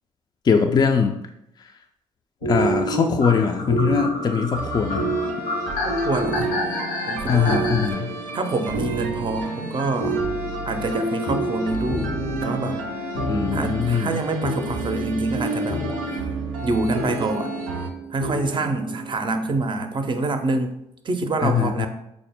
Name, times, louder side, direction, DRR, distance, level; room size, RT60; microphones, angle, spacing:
voice 1, 0.4-1.2 1.6-1.7 2.5-5.1 7.3-8.1 13.3-14.2 21.4-21.9, left 6 dB, 30° left, 4 dB, 0.3 m, -21 dB
sound 1, 2.4-19.1, right 2 dB, 90° left, 1.1 m, -29 dB
sound 2, 3.2-7.9, left 2 dB, 75° left, 0.7 m, -29 dB
sound 3, 4.5-17.9, right 3 dB, 80° right, 0.5 m, -33 dB
voice 2, 5.8-6.5 7.1-7.7 8.3-10.2 10.6-12.1 12.4-12.8 13.5-16.2 16.6-17.6 18.1-20.7 21.0-21.9, right 2 dB, 35° right, 7 dB, 0.5 m, -26 dB
4.8 x 2.0 x 3.4 m, 0.80 s
hypercardioid pair, 55°, 14 cm